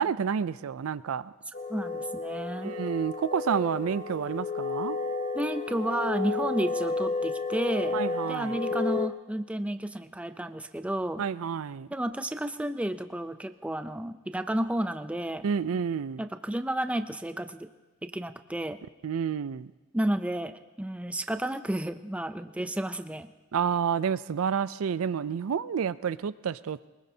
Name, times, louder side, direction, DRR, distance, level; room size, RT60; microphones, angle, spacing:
voice 1, 0.0-1.3 2.6-5.0 7.9-8.6 11.2-11.9 15.4-16.2 19.0-19.7 23.5-26.9, right 7 dB, 80° right, 16 dB, 0.4 m, -29 dB
sound 1, 1.5-9.1, left 3 dB, 35° left, 0.8 m, -32 dB
voice 2, 1.7-2.8 5.3-8.0 8.3-11.2 11.9-15.4 16.2-17.7 18.0-18.8 19.9-23.3, right 1 dB, 5° right, 10 dB, 0.4 m, -32 dB
23.0 x 20.5 x 2.8 m, 1.1 s
head